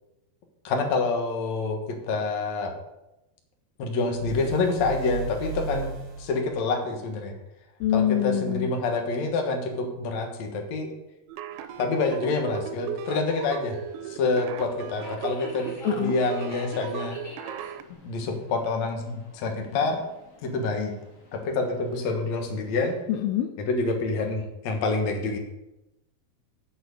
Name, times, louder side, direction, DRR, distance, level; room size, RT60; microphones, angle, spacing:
voice 1, 0.6-2.7 3.8-5.9 6.2-7.3 7.9-10.9 11.8-13.8 14.1-17.2 18.0-20.0 20.4-20.9 21.3-23.0 23.7-25.4, left 3 dB, 55° left, 3 dB, 2.3 m, -27 dB
sound 1, 4.1-6.5, right 6 dB, 45° right, 1.9 m, -35 dB
voice 2, 7.8-8.7 15.8-16.1 23.1-23.5, left 11 dB, 80° left, 6 dB, 2.6 m, -25 dB
sound 2, 11.3-17.8, right 10 dB, 90° right, 2.6 m, -36 dB
Subway metro underground, 11.5-23.0, left 1 dB, 30° left, 1.6 m, -49 dB
9.0 x 6.1 x 8.1 m, 0.93 s
omnidirectional pair, 4.5 m